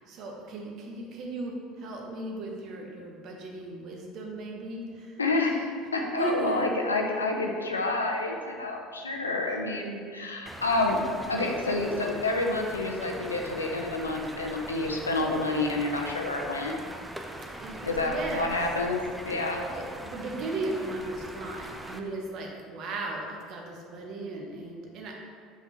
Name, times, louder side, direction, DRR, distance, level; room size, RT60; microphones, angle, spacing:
voice 1, 0.1-5.6 6.2-6.7 9.0-9.1 9.4-9.6 17.6-18.7 19.4-25.1, right 2 dB, 50° right, 0 dB, 1.0 m, -36 dB
voice 2, 5.2-11.0 11.3-16.7 17.8-19.6, left 2 dB, 85° left, 1 dB, 0.6 m, -29 dB
sound 1, 10.5-22.0, right 1 dB, 10° right, 0.5 m, -41 dB
5.9 x 5.5 x 3.0 m, 2.2 s
figure-of-eight pair, 65°, 0 cm